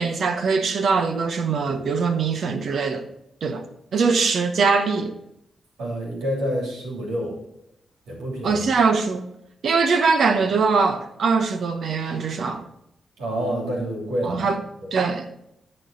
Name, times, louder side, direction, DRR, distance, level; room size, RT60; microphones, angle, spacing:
voice 1, 0.0-3.0 3.4-3.6 3.9-5.2 8.4-9.3 9.6-12.6 14.2-14.6 14.9-15.3, right 4 dB, 70° right, 1.0 m, -22 dB
voice 2, 5.8-7.4 8.1-8.7 13.2-14.5 14.8-14.9, equal, 90° right, 3.1 m, -28 dB
13.5 x 4.5 x 4.0 m
supercardioid pair, 45°, 0 cm